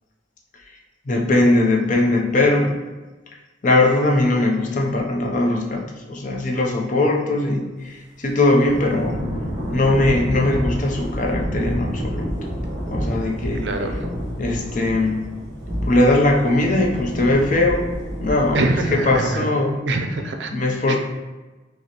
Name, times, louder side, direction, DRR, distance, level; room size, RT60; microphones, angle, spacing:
voice 1, 1.1-2.7 3.6-9.2 9.7-12.3 12.9-13.6 14.4-15.2 15.9-17.9 18.2-18.6 18.9-19.8 20.5-21.0, left 2 dB, 40° left, 0 dB, 0.5 m, -20 dB
Thunder / Rain, 8.7-19.2, equal, 25° right, 0.9 m, -29 dB
voice 2, 13.6-14.1 18.5-19.5 19.9-20.5, right 2 dB, 65° right, 5 dB, 0.4 m, -24 dB
5.0 x 2.1 x 2.9 m, 1.2 s
head